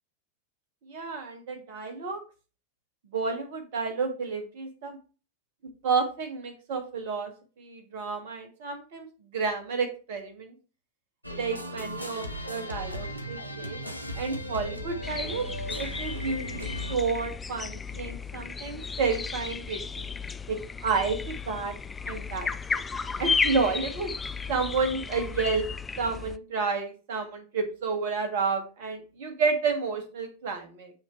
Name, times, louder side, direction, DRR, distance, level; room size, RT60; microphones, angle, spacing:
voice 1, 0.9-2.2 3.1-5.0 5.8-7.3 7.6-9.1 9.3-10.5 11.3-13.8 14.1-15.5 15.8-20.1 20.5-21.7 22.0-22.8 23.2-24.1 24.5-25.6 26.0-30.9, right 4 dB, 50° right, 6 dB, 1.3 m, -30 dB
sound 1, 11.2-17.0, equal, 85° right, 0.7 m, -37 dB
sound 2, 15.0-26.4, left 5 dB, 15° left, 0.4 m, -34 dB
8.6 x 2.9 x 4.6 m, 0.35 s
figure-of-eight pair, 90°, 0 cm